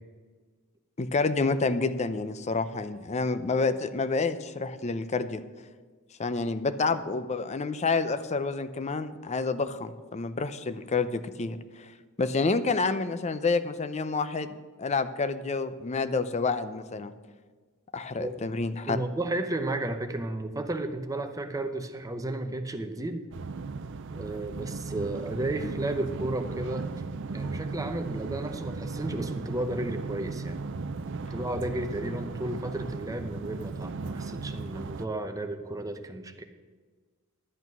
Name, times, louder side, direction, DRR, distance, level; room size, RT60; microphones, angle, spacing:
voice 1, 1.0-5.4 6.2-11.9 12.2-17.1 17.9-19.0, left 4 dB, 30° left, 12 dB, 0.5 m, -29 dB
voice 2, 18.9-23.2 24.2-26.9 27.3-30.6 31.3-36.4, right 1 dB, 15° right, 7 dB, 0.7 m, -33 dB
sound 1, 23.3-35.1, right 4 dB, 60° right, 0.5 m, -36 dB
11.0 x 8.1 x 6.1 m, 1.4 s
head